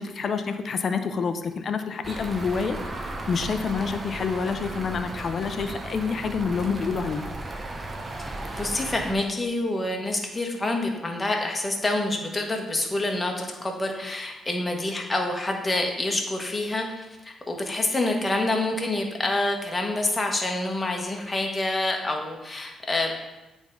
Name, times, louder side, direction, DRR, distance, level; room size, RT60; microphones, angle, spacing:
voice 1, 0.0-7.2, left 5 dB, 50° left, 8 dB, 0.6 m, -28 dB
sound 1, 2.0-9.1, right 2 dB, 25° right, 0.9 m, -35 dB
voice 2, 8.3-23.1, left 2 dB, 20° left, 2 dB, 1.2 m, -27 dB
8.2 x 3.6 x 5.3 m, 1.1 s
cardioid pair, 90°, 0 cm